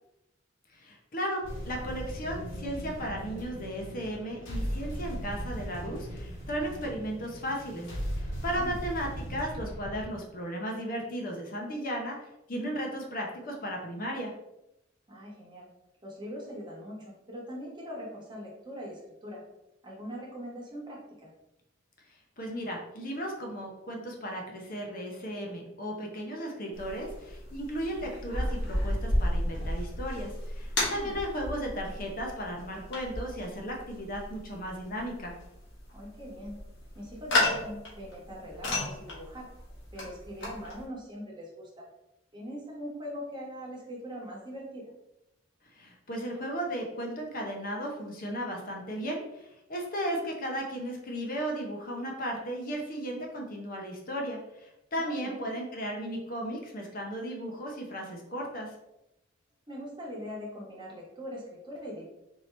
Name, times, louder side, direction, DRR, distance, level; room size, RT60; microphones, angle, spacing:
voice 1, 0.7-14.3 22.4-35.4 45.6-58.7, equal, 45° left, 0 dB, 0.7 m, -35 dB
sound 1, 1.4-10.1, equal, 90° left, 1.4 m, -38 dB
voice 2, 15.1-15.7 16.0-19.4 19.8-21.3 30.9-31.2 35.9-36.6 36.9-39.5 39.9-41.8 42.3-44.9 55.0-55.5 59.7-62.0, equal, 25° right, -3 dB, 1.1 m, -41 dB
sound 2, 26.7-40.8, left 1 dB, 65° left, 1.4 m, -33 dB
4.5 x 2.8 x 3.2 m, 0.89 s
head